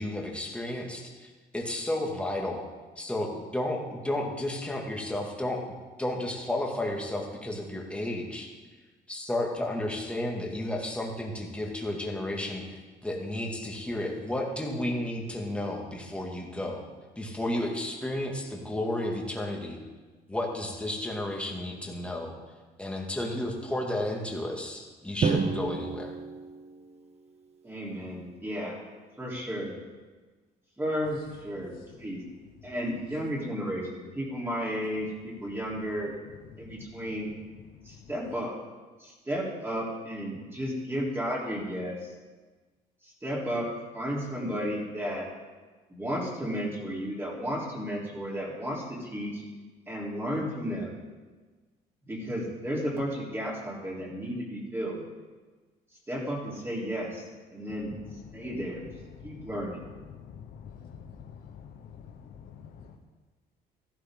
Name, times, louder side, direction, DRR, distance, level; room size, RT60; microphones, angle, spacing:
voice 1, 0.0-2.6 3.0-5.6 6.0-8.5 9.1-16.8 17.2-19.8 20.3-22.3 22.8-26.1, left 1 dB, 5° left, -1 dB, 2.2 m, -32 dB
Drum, 25.2-27.4, right 5 dB, 40° right, 0.9 m, -30 dB
voice 2, 27.6-28.8 29.2-29.7 30.8-32.3 32.6-36.2 36.6-37.3 37.8-38.6 39.0-42.1 43.0-45.3 45.9-49.4 49.9-51.0 52.1-55.0 56.1-58.0 58.3-58.9 59.2-59.8, equal, 15° right, -4 dB, 3.7 m, -33 dB
voice 3, 60.2-63.0, left 7 dB, 65° left, 2 dB, 1.0 m, -47 dB
14.5 x 12.0 x 3.8 m, 1.3 s
cardioid pair, 110°, 17 cm